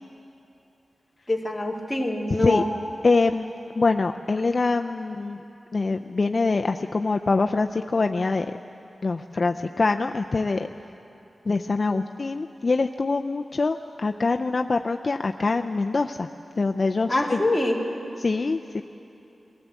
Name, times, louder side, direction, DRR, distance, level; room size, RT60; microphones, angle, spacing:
voice 1, 1.3-2.7 17.1-17.8, left 2 dB, 5° left, -2 dB, 2.2 m, -24 dB
voice 2, 3.0-5.4 5.7-8.5 9.0-10.7 11.5-16.3 16.6-17.4 18.2-18.8, left 3 dB, 40° left, 6 dB, 0.4 m, -24 dB
22.0 x 15.5 x 8.2 m, 2.9 s
wide cardioid pair, 140°, 0 cm